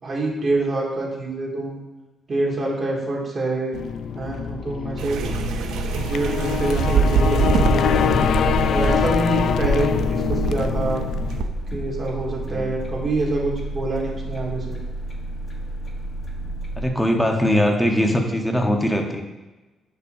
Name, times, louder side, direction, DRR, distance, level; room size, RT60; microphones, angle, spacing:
voice 1, 0.0-1.8 2.3-3.8 4.1-5.2 5.9-8.3 8.7-11.0 11.7-14.8, right 2 dB, 40° right, -2 dB, 2.4 m, -26 dB
sound 1, 3.7-11.4, left 8 dB, 70° left, 0.3 m, -24 dB
sound 2, 5.0-11.5, right 5 dB, 85° right, 0.6 m, -24 dB
sound 3, 5.2-16.9, right 1 dB, 35° left, 1.2 m, -32 dB
voice 2, 16.8-19.2, equal, 5° left, 2 dB, 1.1 m, -21 dB
10.0 x 5.7 x 2.7 m, 1.1 s
cardioid pair, 90°, 0 cm